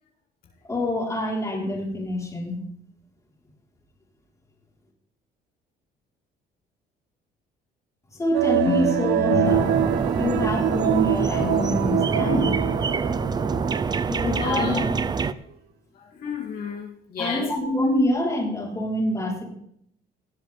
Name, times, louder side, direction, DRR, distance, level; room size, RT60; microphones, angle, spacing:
voice 1, 0.6-2.6 8.1-9.7 10.2-12.6 14.1-14.9 17.2-19.4, left 1 dB, 20° left, -2 dB, 4.2 m, -26 dB
sound 1, 8.3-14.6 14.9-15.0, right 12 dB, 75° right, 0.7 m, -25 dB
sound 2, 8.6-11.0 11.4-13.6, left 6 dB, 80° left, 1.5 m, -32 dB
sound 3, 9.4-15.3, right 5 dB, 25° right, 0.5 m, -26 dB
voice 2, 14.4-14.8 15.9-17.5, left 6 dB, 60° left, -2 dB, 3.4 m, -32 dB
18.0 x 7.7 x 3.6 m, 0.68 s
cardioid pair, 110°, 17 cm